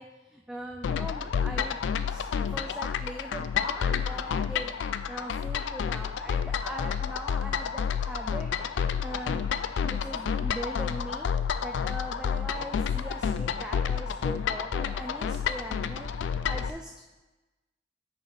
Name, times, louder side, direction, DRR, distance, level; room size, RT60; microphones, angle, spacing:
voice 1, 0.0-4.7 5.1-8.5 9.0-9.5 9.8-16.9, equal, 5° right, 2 dB, 0.3 m, -41 dB
sound 1, 0.8-16.7, left 7 dB, 80° left, 0.3 m, -30 dB
6.4 x 5.0 x 4.9 m, 1.1 s
head